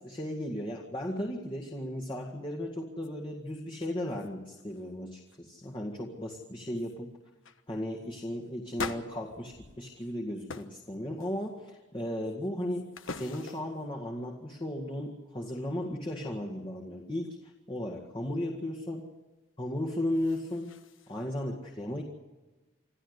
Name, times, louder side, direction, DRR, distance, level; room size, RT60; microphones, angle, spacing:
voice 1, 0.0-7.1 7.7-19.1 19.6-20.7 21.1-22.0, left 1 dB, 25° left, -1 dB, 1.9 m, -35 dB
sound 1, 3.0-3.1 3.5-4.3 4.5-4.9 5.3-5.7 6.3-6.4 6.8-7.0 7.4-7.6 8.7-10.1 10.5-10.8 11.2-11.7 12.2-13.9 19.9-21.2, left 4 dB, 75° left, 1.3 m, -44 dB
26.5 x 14.0 x 8.2 m, 1.2 s
head